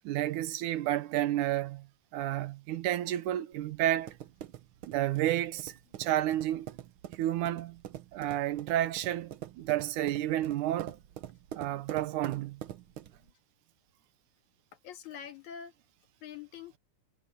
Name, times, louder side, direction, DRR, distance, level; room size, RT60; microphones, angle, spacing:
voice 1, 0.0-1.9 2.1-4.2 4.9-6.7 7.2-7.8 8.1-11.0 11.6-12.6, right 13 dB, 90° right, 2.5 m, -31 dB
sound 1, 3.5-13.3, right 11 dB, 70° right, 1.2 m, -45 dB
voice 2, 14.8-15.7 16.2-16.8, left 8 dB, 75° left, 3.1 m, -45 dB
omnidirectional pair, 3.4 m